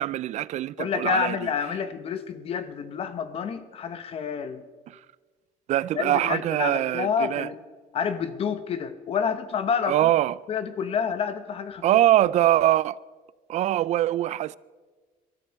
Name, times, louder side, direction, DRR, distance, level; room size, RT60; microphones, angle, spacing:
voice 1, 0.0-1.5 4.9-5.0 5.7-7.5 9.9-10.4 11.8-13.0 13.5-14.6, right 13 dB, 55° right, 0.4 m, -23 dB
voice 2, 0.8-4.6 5.9-7.6 7.9-10.1 10.5-11.8, left 6 dB, 45° left, 1.0 m, -28 dB
23.0 x 13.0 x 4.6 m
cardioid pair, 150°, 14 cm